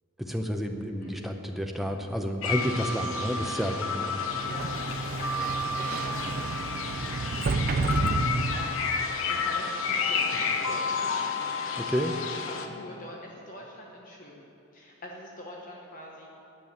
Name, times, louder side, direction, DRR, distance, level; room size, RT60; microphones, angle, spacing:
voice 1, 0.2-4.2 11.8-12.1, equal, ahead, 3 dB, 0.7 m, -30 dB
voice 2, 1.0-1.4 4.5-4.7 5.2-5.5 5.8-6.5 7.7-8.2 8.5-11.2 12.0-14.4 14.7-16.3, left 1 dB, 40° left, -1 dB, 1.0 m, -44 dB
sound 1, 2.4-12.7, left 4 dB, 65° left, 0.9 m, -31 dB
Sliding door, 4.3-9.0, right 3 dB, 40° right, 0.4 m, -30 dB
9.8 x 7.0 x 9.2 m, 3.0 s
head